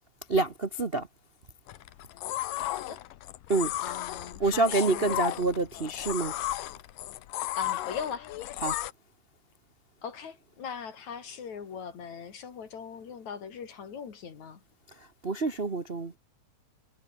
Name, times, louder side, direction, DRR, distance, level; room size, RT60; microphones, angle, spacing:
voice 1, 0.3-1.1 3.5-3.7 4.4-6.3 8.6-8.8 15.2-16.2, right 3 dB, 55° right, 0.6 m, -27 dB
sound 1, 1.7-8.9, left 15 dB, 90° left, 2.7 m, -34 dB
voice 2, 2.7-3.0 3.8-5.4 7.6-8.3 10.0-14.6, left 7 dB, 60° left, 4.1 m, -39 dB
omnidirectional pair, 3.8 m